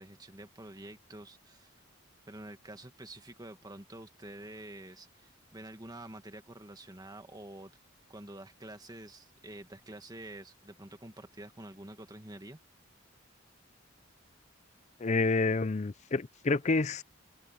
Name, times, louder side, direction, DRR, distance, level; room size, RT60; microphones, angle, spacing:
voice 1, 0.0-1.8 2.3-7.7 8.1-12.6, right 1 dB, 20° right, 1.8 m, -48 dB
voice 2, 15.0-17.0, left 3 dB, 35° left, 0.5 m, -28 dB
open air
head